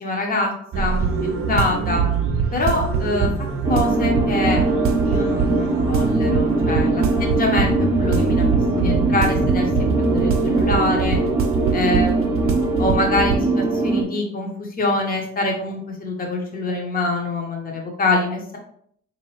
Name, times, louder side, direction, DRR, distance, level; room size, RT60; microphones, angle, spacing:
voice 1, 0.0-2.1 2.5-3.3 3.7-4.6 5.0-8.4 8.8-9.7 10.0-11.2 11.7-18.6, left 2 dB, 30° left, 1 dB, 0.9 m, -25 dB
sound 1, 0.7-13.4, right 5 dB, 45° right, 0.6 m, -23 dB
sound 2, 3.6-14.0, right 2 dB, 15° right, 0.7 m, -22 dB
3.7 x 2.7 x 3.2 m, 0.67 s
cardioid pair, 90°, 30 cm